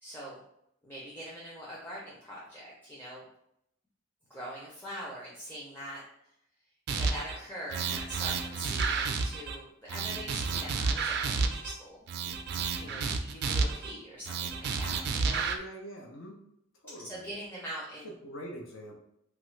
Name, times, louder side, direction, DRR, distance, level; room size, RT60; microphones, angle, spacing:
voice 1, 0.0-0.4 0.8-3.3 4.3-6.0 6.9-12.0 12.7-15.5 17.1-18.1, equal, 10° left, -6 dB, 0.5 m, -43 dB
sound 1, 6.9-7.4 7.7-9.6 9.9-11.7 12.1-13.9 14.3-15.6, right 5 dB, 60° right, 0.3 m, -31 dB
voice 2, 12.8-13.1 15.3-16.4 16.8-17.3 18.0-19.0, equal, 90° left, 0 dB, 0.6 m, -44 dB
2.9 x 2.4 x 3.1 m, 0.76 s
head